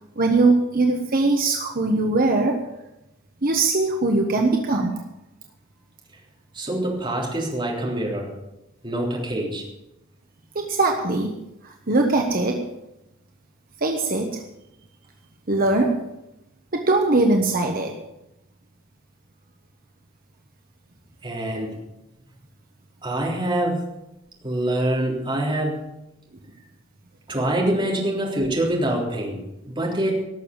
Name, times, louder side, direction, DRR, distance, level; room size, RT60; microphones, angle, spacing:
voice 1, 0.2-2.6 3.4-5.0 10.5-11.3 11.6-12.6 13.8-14.4 15.5-16.0 16.7-18.0, right 2 dB, 45° right, 3 dB, 1.2 m, -21 dB
voice 2, 6.5-8.4 8.8-9.6 21.2-21.7 23.0-23.9 24.4-25.8 27.3-30.2, right 1 dB, 25° right, -2 dB, 3.5 m, -25 dB
18.0 x 7.0 x 7.1 m, 0.90 s
head